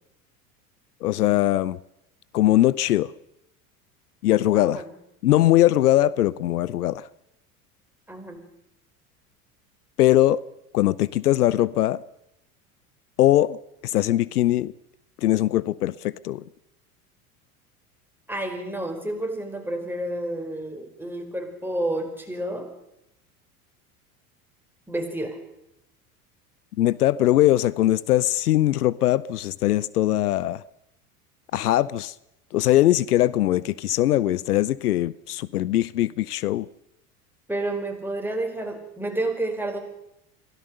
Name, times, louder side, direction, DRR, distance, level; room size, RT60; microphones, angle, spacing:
voice 1, 1.0-1.8 2.3-3.1 4.2-4.8 5.2-7.1 10.0-10.4 10.7-12.0 13.2-13.6 13.8-14.7 15.2-16.4 26.8-30.6 31.5-32.1 32.5-36.7, left 14 dB, 80° left, 21 dB, 0.7 m, -21 dB
voice 2, 4.5-4.9 8.1-8.5 18.3-22.7 24.9-25.4 37.5-39.8, right 1 dB, 5° right, 3 dB, 5.1 m, -30 dB
23.5 x 16.5 x 6.7 m, 0.83 s
hypercardioid pair, 80°, 45 cm